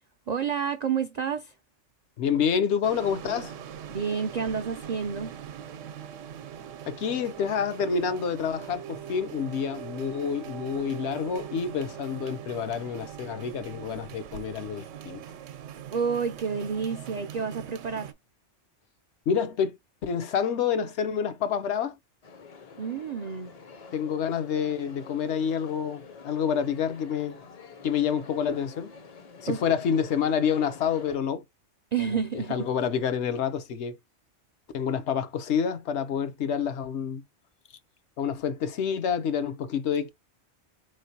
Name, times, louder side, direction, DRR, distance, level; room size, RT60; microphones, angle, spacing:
voice 1, 0.3-1.5 3.9-5.4 15.9-18.1 22.8-23.5 29.5-29.6 31.9-32.7, right 6 dB, 70° right, 0.4 m, -29 dB
voice 2, 2.2-3.5 6.9-15.2 19.3-22.0 23.9-27.4 27.8-28.9 29.4-31.4 32.0-34.0 34.7-37.2 38.2-40.1, left 7 dB, 70° left, 0.9 m, -28 dB
sound 1, 2.8-18.1, right 9 dB, 90° right, 0.9 m, -41 dB
sound 2, 22.2-31.2, left 5 dB, 45° left, 0.5 m, -47 dB
4.2 x 3.2 x 2.7 m
omnidirectional pair, 1.3 m